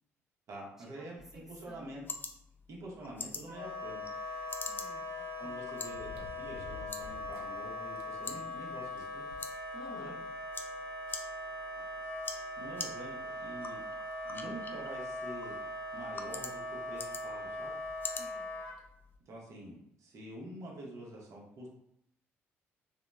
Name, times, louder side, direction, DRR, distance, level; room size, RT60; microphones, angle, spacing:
voice 1, 0.5-2.0 2.7-4.0 5.4-9.2 9.7-10.2 12.6-13.8 14.3-15.6 15.9-16.6 16.9-17.7 19.3-21.7, right 1 dB, 50° right, -3 dB, 0.7 m, -46 dB
sound 1, 1.2-19.2, left 4 dB, 35° left, 0.4 m, -47 dB
voice 2, 1.3-2.1 4.7-5.6 9.8-10.2 11.8-11.9 18.2-18.5, right 1 dB, 5° right, 0 dB, 0.7 m, -57 dB
Wind instrument woodwind instrument, 3.5-18.8, left 1 dB, 85° left, 0.5 m, -41 dB
sound 2, 3.9-4.0 5.8-7.5 8.0-8.1 8.5-8.6 9.0-10.1 11.1-11.2 12.6-12.7 13.3-13.4 14.1-14.3 15.7-15.8 16.0-16.1 17.8-18.1 18.8-18.9, right 1 dB, 85° right, 0.4 m, -51 dB
2.9 x 2.1 x 2.2 m, 0.76 s
hypercardioid pair, 55°, 6 cm